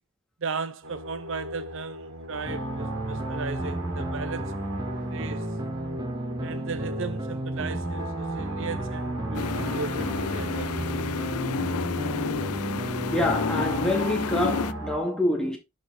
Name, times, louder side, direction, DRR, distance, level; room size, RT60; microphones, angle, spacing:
voice 1, 0.4-4.5 5.1-5.5 6.4-10.7, right 4 dB, 60° right, 0.7 m, -36 dB
sound 1, 0.8-15.0, right 1 dB, 90° right, 2.9 m, -38 dB
sound 2, 2.5-13.9, right 1 dB, 20° right, 0.5 m, -33 dB
cheap fan, 9.3-14.7, left 6 dB, 85° left, 0.6 m, -31 dB
voice 2, 13.1-15.6, left 1 dB, 5° left, 2.3 m, -26 dB
11.0 x 5.0 x 3.8 m
head